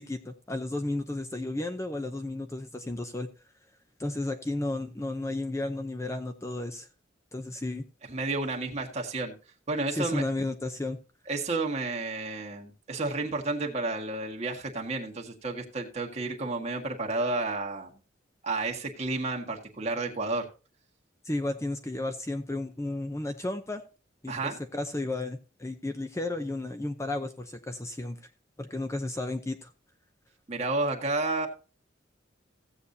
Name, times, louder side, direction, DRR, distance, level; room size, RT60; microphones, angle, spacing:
voice 1, 0.0-3.3 4.0-6.9 7.3-7.8 9.9-11.0 21.2-23.8 24.2-28.2 28.6-29.7, left 2 dB, 15° left, 7 dB, 0.6 m, -33 dB
voice 2, 8.1-9.3 9.7-10.2 11.3-17.9 18.4-20.5 24.3-24.6 30.5-31.5, right 3 dB, 35° right, 0 dB, 1.8 m, -31 dB
15.5 x 8.1 x 2.8 m, 0.34 s
head